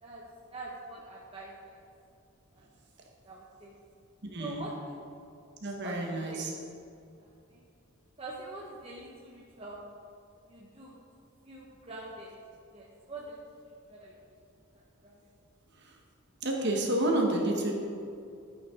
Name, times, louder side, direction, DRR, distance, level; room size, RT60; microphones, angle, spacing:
voice 1, 0.0-1.8 2.5-2.7 3.2-3.7 4.4-5.0 5.8-5.9 6.2-6.4 7.2-7.6 8.2-9.8 10.5-11.0 11.4-12.3 12.7-13.4 13.9-14.1 14.7-15.2, right 2 dB, 30° right, -4 dB, 1.0 m, -45 dB
voice 2, 4.2-4.7 5.6-6.5 15.8-15.9 16.4-17.7, right 1 dB, 55° right, 1 dB, 1.4 m, -30 dB
11.5 x 8.6 x 3.8 m, 2.5 s
head